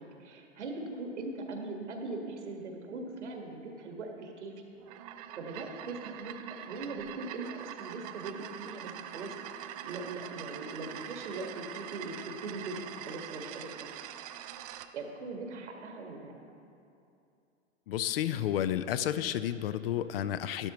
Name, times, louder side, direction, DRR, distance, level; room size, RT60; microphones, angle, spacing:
voice 1, 0.0-4.5 5.3-9.3 9.8-13.9 14.9-16.3, right 3 dB, 70° right, 2 dB, 1.8 m, -40 dB
sound 1, 4.8-14.9, right 10 dB, 35° right, 0.4 m, -44 dB
voice 2, 17.9-20.7, left 11 dB, 55° left, 13 dB, 0.5 m, -31 dB
12.0 x 11.5 x 3.1 m, 2.6 s
hypercardioid pair, 110°, 36 cm